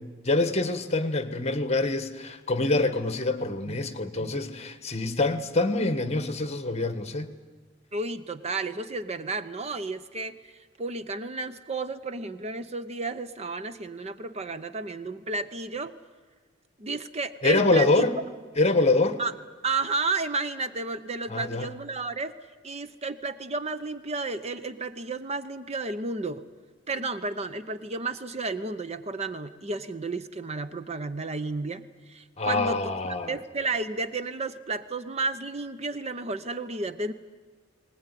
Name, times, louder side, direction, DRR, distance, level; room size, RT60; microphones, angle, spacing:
voice 1, 0.0-7.3 17.4-18.1 18.6-19.2 21.3-21.7 32.4-33.4, left 2 dB, 35° left, 10 dB, 1.4 m, -25 dB
voice 2, 7.9-15.9 16.8-18.0 19.2-19.3 19.6-22.3 22.6-26.4 26.9-32.9 33.3-37.1, right 3 dB, 35° right, 11 dB, 0.8 m, -32 dB
20.0 x 19.0 x 9.9 m, 1.4 s
head